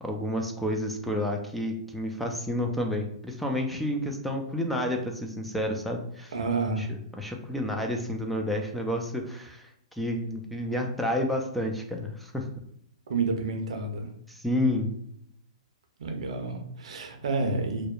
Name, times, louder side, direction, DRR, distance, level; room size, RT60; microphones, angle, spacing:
voice 1, 0.0-6.3 6.8-9.7 10.0-12.5 14.3-14.9, left 1 dB, ahead, 2 dB, 0.3 m, -30 dB
voice 2, 6.3-6.9 13.1-14.1 16.0-17.9, right 3 dB, 75° right, 4 dB, 0.6 m, -29 dB
2.7 x 2.0 x 2.4 m, 0.73 s
hypercardioid pair, 130°, 4 cm